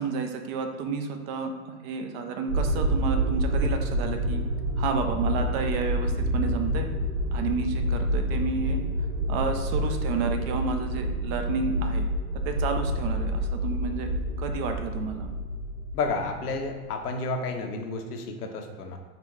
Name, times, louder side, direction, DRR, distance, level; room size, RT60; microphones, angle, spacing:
voice 1, 0.0-4.4 4.8-6.9 7.3-8.8 9.3-12.1 12.3-14.1 14.4-15.3, right 5 dB, 40° right, 6 dB, 0.5 m, -31 dB
sound 1, 2.5-16.7, equal, 80° right, 1.4 m, -28 dB
voice 2, 15.9-19.0, left 3 dB, 75° left, 4 dB, 0.8 m, -31 dB
3.9 x 3.4 x 3.1 m, 1.4 s
hypercardioid pair, 100°, 46 cm